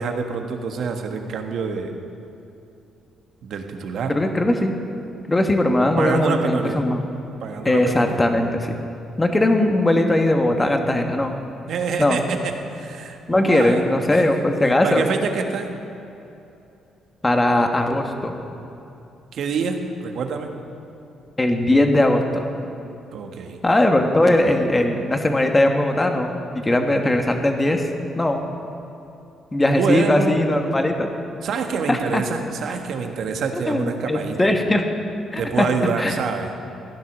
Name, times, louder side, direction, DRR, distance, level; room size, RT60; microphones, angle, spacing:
voice 1, 0.0-1.9 3.4-4.3 6.0-6.9 7.4-8.3 11.7-14.2 14.8-15.7 19.3-20.5 23.1-23.6 29.7-30.4 31.4-34.5 35.4-36.5, right 5 dB, 70° right, 4 dB, 1.4 m, -26 dB
voice 2, 4.1-4.7 5.3-7.0 7.6-8.8 9.2-11.4 12.0-12.2 13.3-15.0 17.2-18.4 21.4-22.5 23.6-28.4 29.5-31.1 31.9-32.2 33.5-34.8 35.3-35.7 36.0-36.1, left 1 dB, 20° left, 4 dB, 1.5 m, -19 dB
15.0 x 10.5 x 6.3 m, 2.8 s
cardioid pair, 90°, 0 cm